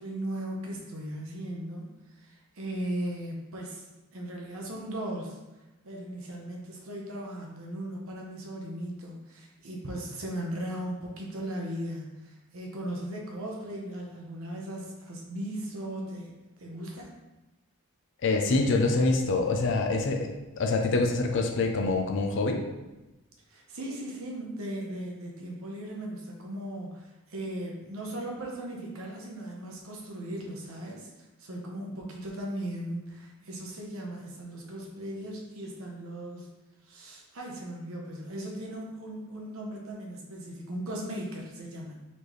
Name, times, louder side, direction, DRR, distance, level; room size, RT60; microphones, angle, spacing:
voice 1, 0.0-5.4 5.8-16.3 16.6-17.1 23.5-36.5 36.8-42.1, right 1 dB, 70° right, -1 dB, 0.9 m, -37 dB
voice 2, 18.2-22.6, left 3 dB, 55° left, 2 dB, 0.4 m, -25 dB
4.2 x 3.3 x 3.1 m, 1.1 s
head